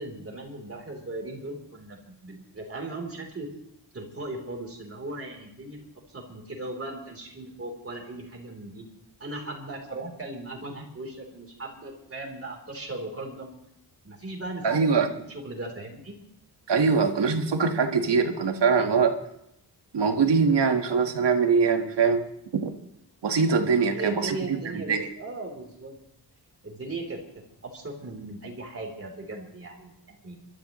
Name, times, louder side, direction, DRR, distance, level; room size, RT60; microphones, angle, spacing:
voice 1, 0.0-3.5 3.9-5.8 6.1-8.9 9.2-13.6 14.0-16.2 23.9-26.0 26.6-27.2 27.6-30.4, right 2 dB, 35° right, 1 dB, 3.5 m, -38 dB
voice 2, 14.6-15.1 16.7-19.2 19.9-22.2 22.5-22.8 23.2-25.1, right 5 dB, 80° right, 5 dB, 1.6 m, -23 dB
27.0 x 13.0 x 3.1 m, 0.79 s
wide cardioid pair, 160°, 41 cm